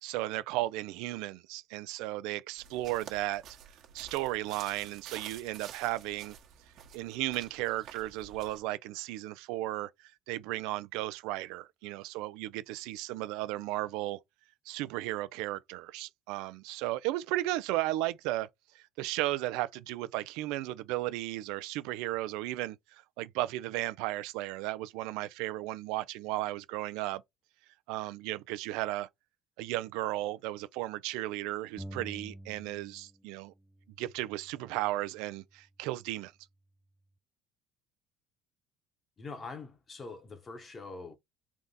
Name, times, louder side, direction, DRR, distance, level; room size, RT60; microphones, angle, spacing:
voice 1, 0.0-3.4 3.9-6.4 6.9-14.2 14.7-18.5 18.7-27.2 27.9-29.1 29.6-33.5 34.0-36.3, right 17 dB, 80° right, 0.4 m, -35 dB
sound 1, 2.6-8.6, right 9 dB, 60° right, 1.1 m, -50 dB
sound 2, 31.8-33.3 33.5-35.3, right 1 dB, 5° left, 0.4 m, -49 dB
voice 2, 39.2-41.2, left 3 dB, 30° left, 1.1 m, -44 dB
3.5 x 2.5 x 4.0 m
supercardioid pair, 100°, 0 cm